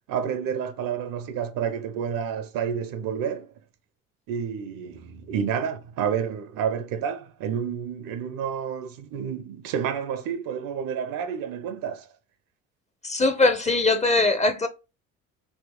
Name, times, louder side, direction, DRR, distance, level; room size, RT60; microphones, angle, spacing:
voice 1, 0.1-3.5 4.3-12.1, right 7 dB, 60° right, 0.7 m, -29 dB
voice 2, 13.0-14.7, left 2 dB, 20° left, 0.6 m, -21 dB
3.2 x 3.1 x 3.0 m
hypercardioid pair, 60°, 38 cm